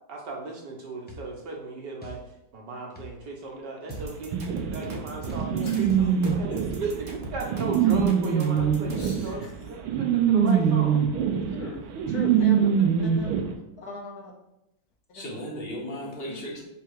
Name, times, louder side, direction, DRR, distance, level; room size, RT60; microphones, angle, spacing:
voice 1, 0.1-2.2 2.5-6.5 6.8-11.0 12.5-12.7, right 3 dB, 65° right, -1 dB, 1.4 m, -36 dB
sound 1, 1.1-1.3 2.0-2.2 2.9-3.2 3.9-6.8, right 1 dB, 10° left, 0.5 m, -44 dB
sound 2, 3.9-9.2, right 1 dB, 40° right, 0.8 m, -38 dB
sound 3, 4.3-13.4, right 8 dB, 85° right, 1.5 m, -24 dB
voice 2, 5.6-5.9 6.2-6.7 8.9-9.7 10.0-10.1 10.7-10.8 15.1-16.6, equal, 35° left, -2 dB, 1.2 m, -38 dB
voice 3, 11.5-11.8 12.1-12.7 13.0-14.3 15.1-15.5 16.0-16.4, left 1 dB, 55° left, 0 dB, 1.4 m, -38 dB
6.8 x 3.5 x 4.7 m, 0.87 s
omnidirectional pair, 2.2 m